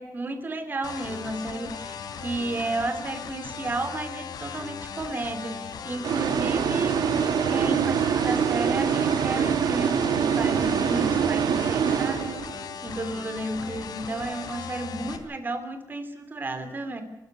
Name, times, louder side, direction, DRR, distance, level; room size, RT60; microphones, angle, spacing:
voice 1, 0.0-7.1 7.5-12.3 12.8-17.0, right 2 dB, 30° right, 8 dB, 3.2 m, -32 dB
sound 1, 0.8-15.2, left 7 dB, 80° left, 3.2 m, -38 dB
sound 2, 6.0-12.7, right 7 dB, 80° right, 1.3 m, -24 dB
29.5 x 13.5 x 8.2 m, 0.97 s
wide cardioid pair, 160°, 7 cm